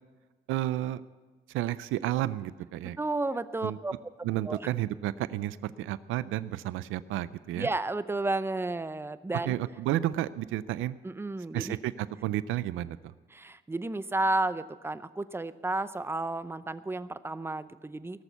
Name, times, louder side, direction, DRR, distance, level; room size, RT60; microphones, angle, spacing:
voice 1, 0.5-1.0 1.5-3.0 3.6-3.8 4.2-7.7 9.5-11.0 11.5-13.0, right 14 dB, 90° right, 16 dB, 0.4 m, -31 dB
voice 2, 3.0-3.9 4.4-4.7 7.6-9.5 11.0-11.8 13.3-18.2, right 2 dB, 10° right, 14 dB, 0.6 m, -32 dB
18.0 x 7.0 x 8.1 m, 1.4 s
cardioid pair, 90°, 20 cm